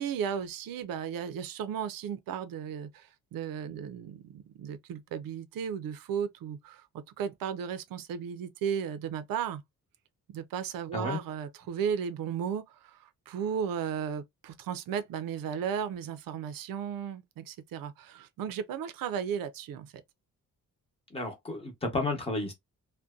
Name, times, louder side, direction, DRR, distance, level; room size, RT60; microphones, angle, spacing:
voice 1, 0.0-9.6 10.3-19.9, right 8 dB, 85° right, 0.5 m, -35 dB
voice 2, 21.1-22.5, left 2 dB, 15° left, 0.8 m, -32 dB
2.6 x 2.1 x 2.3 m
wide cardioid pair, 180°, 33 cm